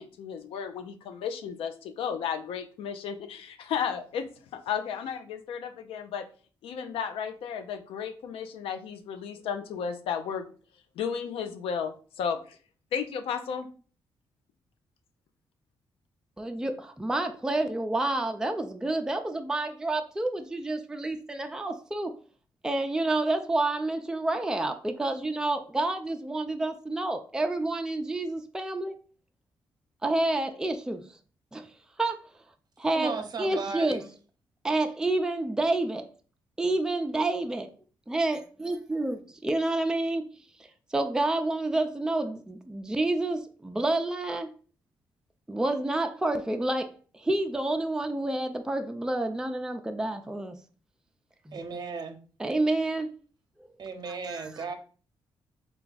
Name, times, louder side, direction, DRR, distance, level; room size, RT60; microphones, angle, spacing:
voice 1, 0.0-6.2 6.6-10.5 11.0-12.6 12.9-13.7, left 7 dB, 85° left, 9 dB, 0.5 m, -34 dB
voice 2, 16.4-22.1 22.6-28.9 30.0-31.0 31.5-31.7 32.0-32.2 32.8-34.0 34.6-36.1 36.6-37.7 38.1-40.3 40.9-44.5 45.5-50.6 51.5-51.6 52.4-53.2 54.3-54.5, right 2 dB, 5° right, 5 dB, 0.4 m, -29 dB
voice 3, 32.9-34.1 51.5-52.2 53.8-54.8, right 4 dB, 45° right, 7 dB, 0.7 m, -35 dB
3.3 x 2.3 x 3.9 m, 0.40 s
cardioid pair, 70°, 9 cm